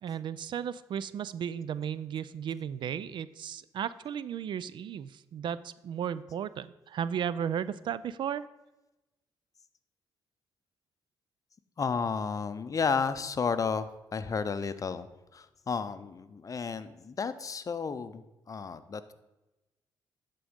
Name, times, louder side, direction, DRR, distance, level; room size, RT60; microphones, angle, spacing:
voice 1, 0.0-8.5, right 8 dB, 60° right, 17 dB, 0.4 m, -35 dB
voice 2, 11.8-15.1 15.3-19.1, left 5 dB, 40° left, 12 dB, 0.6 m, -32 dB
11.0 x 3.8 x 5.1 m, 1.0 s
supercardioid pair, 60°, 9 cm